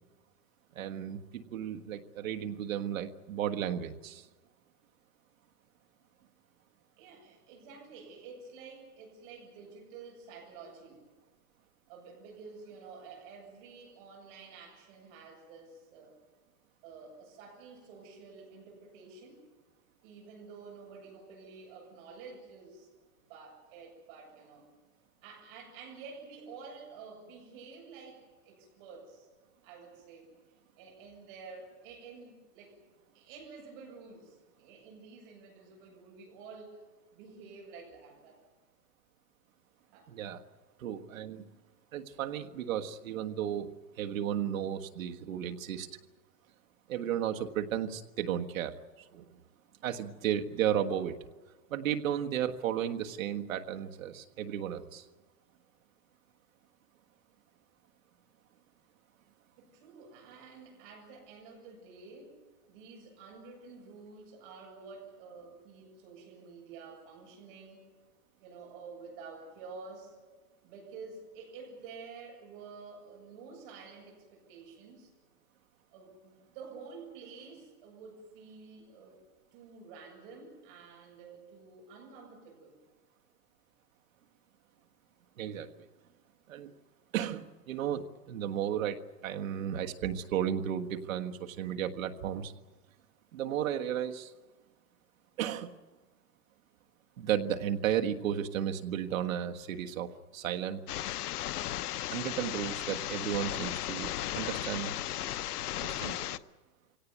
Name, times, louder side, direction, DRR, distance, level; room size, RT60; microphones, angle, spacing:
voice 1, 0.7-4.2 40.1-40.4 40.8-41.4 41.9-45.9 46.9-48.7 49.1-49.2 49.8-51.2 51.7-55.0 85.4-85.7 86.5-86.7 87.1-92.5 93.3-94.3 95.4-95.7 97.2-100.8 102.1-105.0 105.8-106.4, right 10 dB, 60° right, 5 dB, 1.6 m, -34 dB
voice 2, 7.0-11.0 11.9-16.2 16.8-19.4 20.0-22.9 23.3-24.7 25.2-29.3 29.6-30.3 30.8-32.8 33.1-36.8 37.1-38.4 39.9-40.1 59.6-62.4 62.7-67.8 68.4-70.2 70.6-75.1 75.9-79.2 79.5-82.8, right 4 dB, 35° right, 0 dB, 7.9 m, -50 dB
sound 1, 100.9-106.4, left 13 dB, 75° left, 0.9 m, -35 dB
24.0 x 17.5 x 9.4 m, 1.3 s
supercardioid pair, 175°, 46 cm